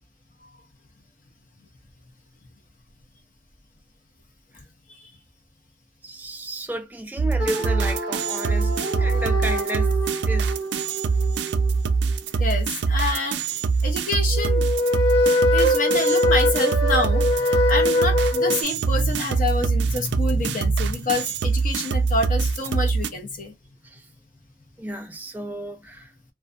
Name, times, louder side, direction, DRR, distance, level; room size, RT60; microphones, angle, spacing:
voice 1, 6.0-10.0 10.3-10.5 23.9-24.0 24.8-26.1, right 1 dB, 10° right, 0.4 m, -33 dB
sound 1, 7.2-23.1, right 4 dB, 85° right, 0.3 m, -23 dB
sound 2, 7.4-12.3 14.3-18.6, left 1 dB, 85° left, 0.9 m, -24 dB
voice 2, 12.4-14.6 15.5-23.5, left 2 dB, 50° left, 0.8 m, -27 dB
2.4 x 2.3 x 2.5 m
head